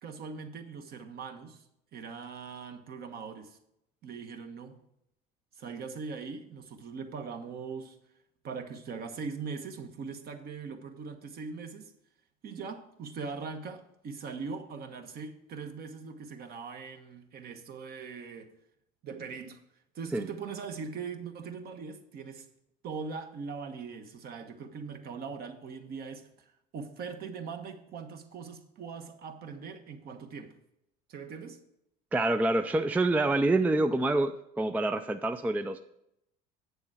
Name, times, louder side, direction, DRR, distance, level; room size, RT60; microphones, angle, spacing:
voice 1, 0.0-1.6 1.9-3.6 4.0-4.8 5.5-8.0 8.4-11.9 12.4-18.5 19.0-19.6 19.9-22.5 22.8-26.3 26.7-30.6 31.1-31.6, right 5 dB, 50° right, 1.2 m, -41 dB
voice 2, 32.1-35.8, right 2 dB, 10° right, 0.4 m, -27 dB
8.0 x 7.0 x 4.9 m
supercardioid pair, 95°, 21 cm